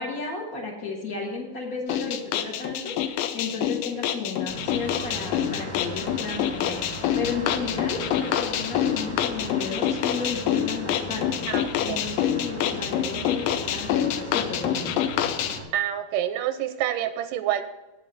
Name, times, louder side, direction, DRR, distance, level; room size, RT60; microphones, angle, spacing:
voice 1, 0.0-11.4 11.8-14.9, left 4 dB, 70° left, -3 dB, 0.8 m, -33 dB
sound 1, 1.9-15.6, left 10 dB, 85° left, 2.3 m, -27 dB
sound 2, 4.5-15.7, right 1 dB, 15° right, 0.6 m, -38 dB
voice 2, 11.5-12.0 15.7-17.6, right 11 dB, 80° right, 10 dB, 2.1 m, -27 dB
8.6 x 7.3 x 6.7 m, 1.0 s
omnidirectional pair, 3.8 m